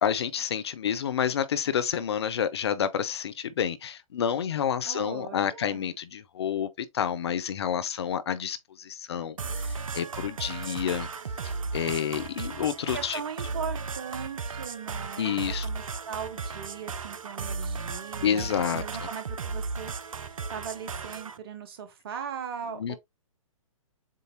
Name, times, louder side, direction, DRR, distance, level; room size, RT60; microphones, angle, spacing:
voice 1, 0.0-11.1 11.7-13.2 15.2-15.7 18.2-18.8 22.8-23.0, left 8 dB, 50° left, 0.6 m, -29 dB
voice 2, 4.8-6.0 12.9-23.0, right 7 dB, 45° right, 1.0 m, -39 dB
sound 1, 9.4-21.4, right 4 dB, 70° right, 0.5 m, -35 dB
7.4 x 2.6 x 2.7 m
figure-of-eight pair, 125°, 18 cm